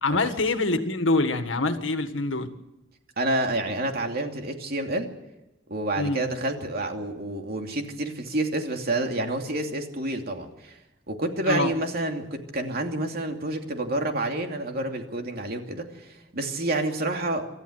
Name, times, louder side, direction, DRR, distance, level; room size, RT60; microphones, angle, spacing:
voice 1, 0.0-2.5 6.0-6.2 11.5-11.7, left 2 dB, 85° left, 8 dB, 1.8 m, -25 dB
voice 2, 3.2-5.1 5.7-10.8 11.1-17.5, right 1 dB, 55° right, 3 dB, 2.8 m, -29 dB
26.5 x 13.5 x 8.1 m, 1.0 s
head